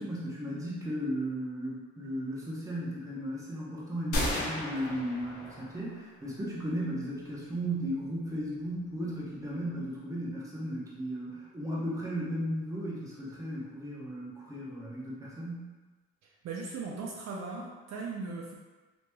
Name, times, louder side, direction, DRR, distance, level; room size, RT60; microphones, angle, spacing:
voice 1, 0.0-15.7, equal, 10° right, -6 dB, 0.9 m, -35 dB
sound 1, 4.1-6.0, left 1 dB, 75° left, 0.8 m, -34 dB
voice 2, 16.4-18.5, right 4 dB, 60° right, -2 dB, 0.5 m, -38 dB
3.0 x 2.9 x 2.3 m, 1.2 s
cardioid pair, 90°, 30 cm